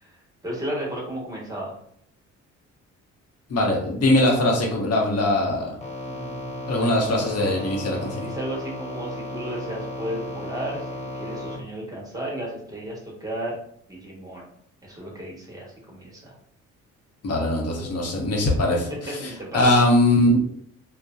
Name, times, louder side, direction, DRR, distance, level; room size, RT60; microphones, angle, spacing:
voice 1, 0.4-1.8 6.0-7.0 8.2-13.6 13.9-14.5 14.8-16.3 18.7-19.7, right 1 dB, 10° right, -4 dB, 1.0 m, -34 dB
voice 2, 3.5-5.7 6.7-8.2 17.2-18.8 19.5-20.4, left 1 dB, 55° left, -1 dB, 0.8 m, -21 dB
sound 1, 5.8-11.6, left 1 dB, 20° left, 0.6 m, -34 dB
2.6 x 2.1 x 2.3 m, 0.68 s
cardioid pair, 90°, 30 cm